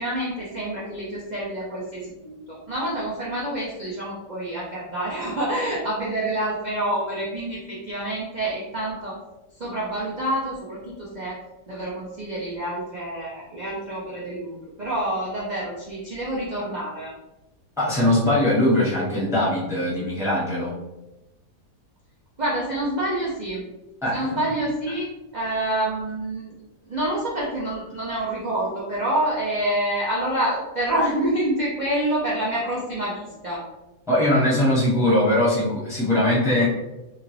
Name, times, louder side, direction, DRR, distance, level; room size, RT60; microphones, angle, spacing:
voice 1, 0.0-9.2 9.6-11.4 11.7-17.1 22.4-23.6 24.1-25.1 25.3-26.5 26.9-33.6, right 1 dB, 90° right, -6 dB, 0.4 m, -27 dB
voice 2, 17.8-20.7 24.0-24.3 34.1-36.7, left 1 dB, ahead, -8 dB, 0.9 m, -21 dB
2.9 x 2.3 x 3.1 m, 1.0 s
omnidirectional pair, 1.7 m